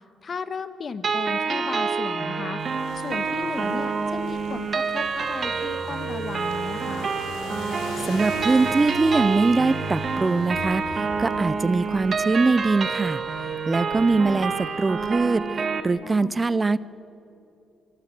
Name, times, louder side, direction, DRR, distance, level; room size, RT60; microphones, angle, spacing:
voice 1, 0.2-2.6 2.9-7.1 16.0-16.3, left 5 dB, 45° left, 12 dB, 1.5 m, -35 dB
sound 1, 1.0-15.8, right 5 dB, 45° right, 1.8 m, -28 dB
sound 2, 2.6-15.1, left 3 dB, 90° left, 4.2 m, -40 dB
voice 2, 8.0-13.2 13.7-16.8, right 3 dB, 25° right, 18 dB, 0.6 m, -22 dB
23.5 x 23.0 x 7.7 m, 2.9 s
cardioid pair, 90°, 0 cm